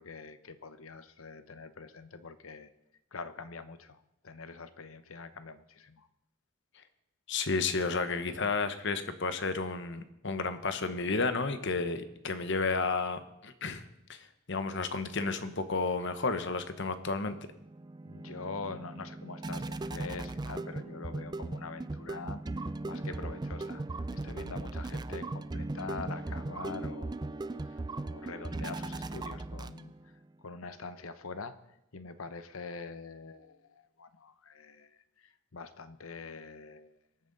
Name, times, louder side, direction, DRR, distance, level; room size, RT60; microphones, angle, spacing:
voice 1, 0.0-2.7 3.1-6.1 18.0-22.4 22.8-23.8 24.2-29.9 30.4-31.5 31.9-35.0 35.2-37.0, left 4 dB, 80° left, 12 dB, 0.9 m, -44 dB
voice 2, 7.3-13.8 14.1-17.3, left 4 dB, 60° left, 10 dB, 1.0 m, -32 dB
sound 1, 17.5-30.1, right 2 dB, 20° right, 0.4 m, -38 dB
23.0 x 9.2 x 4.1 m, 0.85 s
head